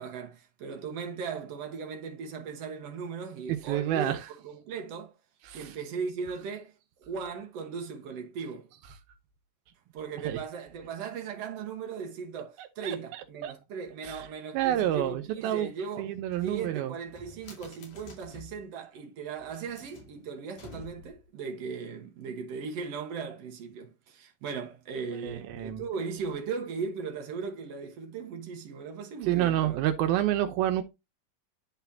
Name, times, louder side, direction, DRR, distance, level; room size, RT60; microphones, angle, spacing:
voice 1, 0.0-5.1 5.5-6.7 7.0-8.7 9.9-16.1 16.4-29.8, right 5 dB, 60° right, 1.9 m, -38 dB
voice 2, 3.5-4.3 5.4-5.8 10.2-10.4 12.6-13.5 14.0-14.3 14.5-15.7 16.0-17.0 25.2-25.8 29.2-30.8, right 12 dB, 85° right, 2.7 m, -29 dB
sound 1, 16.3-18.6 19.3-21.3, left 2 dB, 60° left, 4.2 m, -50 dB
11.5 x 4.1 x 2.7 m
omnidirectional pair, 4.2 m